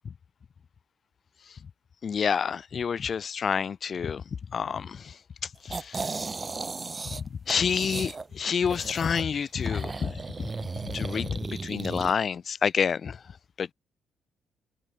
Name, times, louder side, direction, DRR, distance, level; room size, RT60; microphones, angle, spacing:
voice 1, 2.0-4.2 4.5-5.0 5.7-6.0 7.5-10.1 10.8-11.4 11.6-13.2 13.6-13.7, left 6 dB, 45° left, 0.7 m, -28 dB
sound 1, 5.7-7.2 7.5-9.2 9.6-12.1, right 4 dB, 30° right, 5.1 m, -35 dB
cardioid pair, 90°, 0 cm